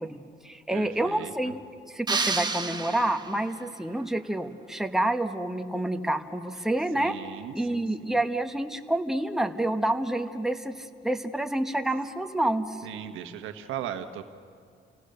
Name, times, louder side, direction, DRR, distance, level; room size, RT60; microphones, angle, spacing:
voice 1, 0.0-1.6 1.9-7.2 7.5-12.8, right 1 dB, ahead, 6 dB, 1.1 m, -28 dB
voice 2, 0.7-1.5 6.9-8.2 12.8-14.2, right 10 dB, 90° right, 7 dB, 1.3 m, -38 dB
sound 1, 2.1-3.6, right 3 dB, 20° right, 1.4 m, -30 dB
27.5 x 16.5 x 6.7 m, 2.3 s
cardioid pair, 90°, 20 cm